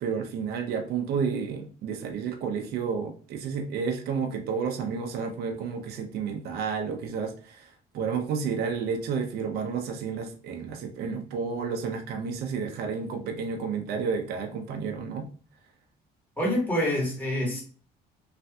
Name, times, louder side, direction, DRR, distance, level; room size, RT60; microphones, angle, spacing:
voice 1, 0.0-15.3, right 6 dB, 70° right, 4 dB, 0.6 m, -31 dB
voice 2, 16.4-17.6, left 1 dB, 10° left, -3 dB, 1.4 m, -26 dB
3.2 x 2.6 x 2.3 m, 0.40 s
cardioid pair, 110°, 17 cm